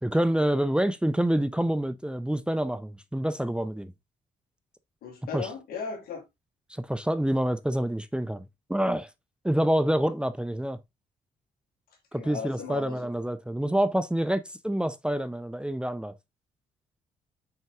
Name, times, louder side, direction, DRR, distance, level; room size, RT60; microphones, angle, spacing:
voice 1, 0.0-3.9 5.3-5.5 6.7-8.4 8.7-9.1 9.4-10.8 12.1-16.1, right 1 dB, 5° right, 0.7 m, -27 dB
voice 2, 5.0-6.2 12.1-13.1, left 6 dB, 80° left, 2.3 m, -36 dB
5.8 x 4.4 x 3.6 m
supercardioid pair, 60°, 15 cm